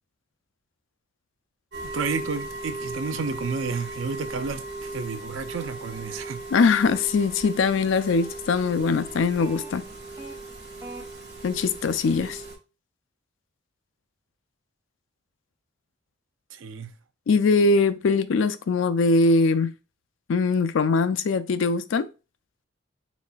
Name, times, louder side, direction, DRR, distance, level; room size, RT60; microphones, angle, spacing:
sound 1, 1.7-12.6, right 2 dB, 55° right, 1.0 m, -38 dB
voice 1, 1.8-6.4 16.5-16.9, right 4 dB, 80° right, 0.5 m, -31 dB
sound 2, 5.6-7.1 7.9-10.4 10.8-11.0, right 2 dB, 15° right, 0.7 m, -47 dB
voice 2, 6.5-9.8 11.4-12.4 17.3-19.7 20.3-22.1, left 4 dB, 75° left, 0.4 m, -22 dB
4.1 x 4.1 x 2.3 m
head